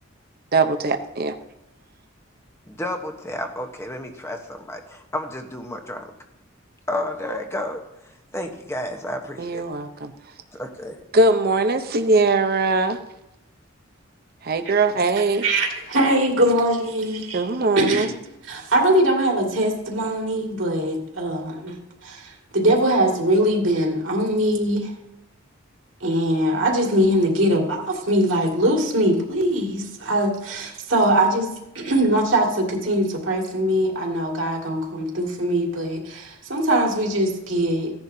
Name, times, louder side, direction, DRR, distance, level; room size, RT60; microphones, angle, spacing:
voice 1, 0.5-1.3 9.4-10.1 11.1-13.0 14.4-15.4 17.3-18.1, right 3 dB, 50° right, 7 dB, 0.8 m, -20 dB
voice 2, 2.7-6.1 6.9-7.8 8.3-9.6 10.5-11.0, left 1 dB, 15° left, 4 dB, 1.1 m, -31 dB
voice 3, 15.4-17.4 17.8-18.1 18.5-21.8 22.0-24.9 26.0-37.9, right 1 dB, 70° right, 0 dB, 2.3 m, -22 dB
16.0 x 10.5 x 2.8 m, 0.86 s
head